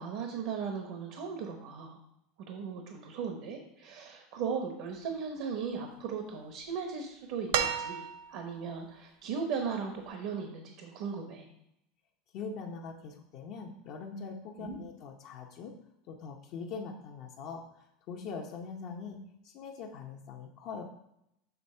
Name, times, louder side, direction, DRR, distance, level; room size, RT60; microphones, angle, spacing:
voice 1, 0.0-2.0 2.5-11.5 14.6-14.8, right 6 dB, 65° right, 4 dB, 0.9 m, -37 dB
sound 1, 7.5-8.5 10.1-10.2, right 8 dB, 80° right, 0.5 m, -32 dB
voice 2, 12.3-15.7 16.1-19.2 19.4-20.8, left 5 dB, 55° left, 1 dB, 0.8 m, -42 dB
7.0 x 3.4 x 4.3 m, 0.79 s
supercardioid pair, 130°, 0 cm